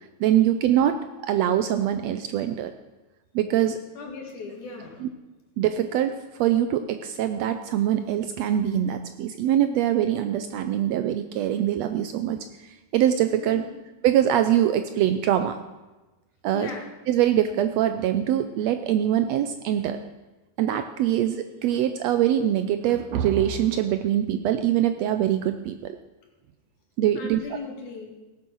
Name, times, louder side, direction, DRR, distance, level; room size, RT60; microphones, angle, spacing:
voice 1, 0.2-2.7 3.3-3.8 5.0-5.1 5.6-6.1 6.4-13.6 14.0-15.6 16.4-16.7 17.1-20.0 20.6-21.4 21.6-26.0 27.0-27.4, right 11 dB, 75° right, 9 dB, 1.6 m, -23 dB
voice 2, 4.0-5.1 13.4-13.7 16.5-16.9 27.2-28.1, left 4 dB, 75° left, 1 dB, 3.5 m, -38 dB
17.5 x 7.6 x 6.2 m, 1.1 s
omnidirectional pair, 3.5 m